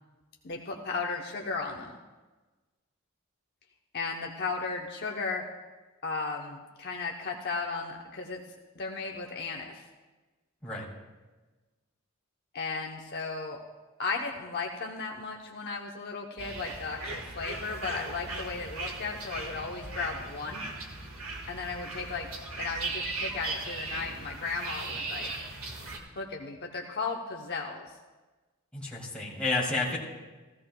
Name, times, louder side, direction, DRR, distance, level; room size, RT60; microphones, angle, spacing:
voice 1, 0.4-2.0 3.9-5.4 6.0-8.4 8.8-9.9 12.5-13.6 14.0-20.6 21.5-22.3 22.6-25.3 26.2-28.0, left 4 dB, 50° left, 0 dB, 0.8 m, -35 dB
sound 1, 16.4-26.0, right 3 dB, 85° right, 1.8 m, -38 dB
voice 2, 28.7-30.0, left 3 dB, 5° left, -6 dB, 2.6 m, -30 dB
16.5 x 15.0 x 2.2 m, 1.2 s
head